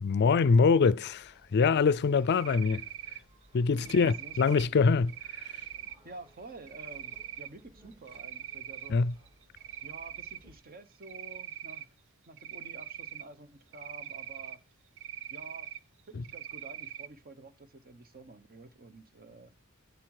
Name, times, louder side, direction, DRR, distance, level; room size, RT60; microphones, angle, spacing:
voice 1, 0.0-2.9 3.5-5.6 8.9-9.1 16.1-16.2, left 5 dB, 50° left, 0.4 m, -24 dB
sound 1, 1.1-10.6, equal, 25° right, 3.8 m, -61 dB
Cricket, 2.3-3.2 3.8-4.6 5.1-5.9 6.7-7.5 7.9-8.9 9.3-10.4 11.0-11.8 12.4-13.2 13.7-14.6 15.0-15.8 16.2-17.1, right 11 dB, 60° right, 0.4 m, -42 dB
voice 2, 3.8-4.8 6.0-9.0 9.8-11.9 12.3-14.6 15.3-15.7 16.1-19.5, right 2 dB, 40° right, 1.0 m, -50 dB
9.4 x 7.6 x 4.8 m
head